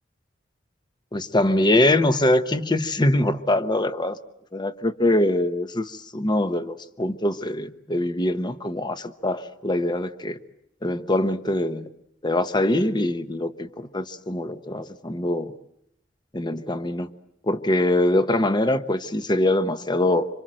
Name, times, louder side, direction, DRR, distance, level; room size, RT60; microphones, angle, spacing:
voice 1, 1.1-4.2 4.5-10.4 10.8-11.9 12.2-15.5 16.3-17.1 17.4-20.3, left 1 dB, 25° left, 11 dB, 1.0 m, -23 dB
26.5 x 26.0 x 7.6 m, 0.80 s
head